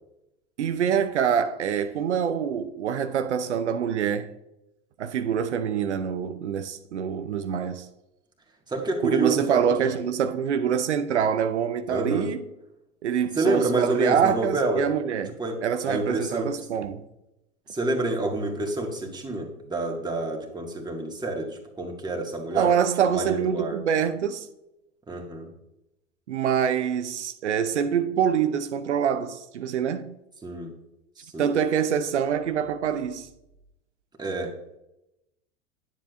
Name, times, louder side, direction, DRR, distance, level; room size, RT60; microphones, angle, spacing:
voice 1, 0.6-4.3 5.0-7.9 9.0-12.4 13.0-17.0 22.5-24.5 26.3-30.2 31.4-33.3, right 8 dB, 90° right, 0.6 m, -25 dB
voice 2, 8.7-10.1 11.9-12.3 13.4-14.9 15.4-15.6 15.9-16.5 17.7-22.7 23.0-23.8 25.1-25.5 30.4-30.7 31.2-31.5 34.2-34.5, right 2 dB, 10° right, 1.9 m, -28 dB
10.0 x 7.3 x 2.5 m
hypercardioid pair, 95°, 34 cm